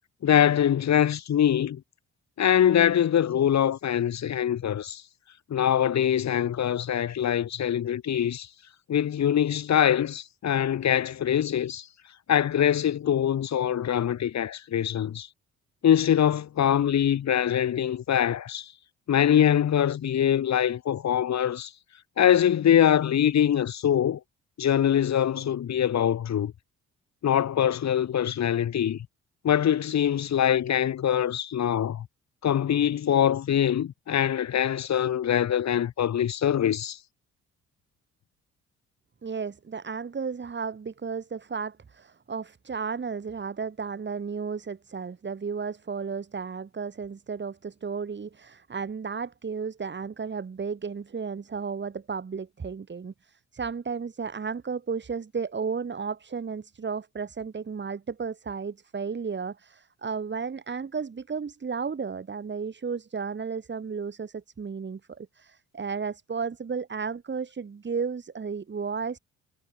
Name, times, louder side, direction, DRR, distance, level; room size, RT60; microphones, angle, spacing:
voice 1, 0.2-1.8 2.4-5.0 5.5-8.5 8.9-11.9 12.3-15.3 15.8-18.7 19.1-21.7 22.2-24.2 24.6-26.5 27.2-29.1 29.4-32.1 32.4-37.0, left 10 dB, 65° left, 5.5 m, -23 dB
voice 2, 39.2-69.2, right 5 dB, 35° right, 5.6 m, -33 dB
cardioid pair, 90°, 30 cm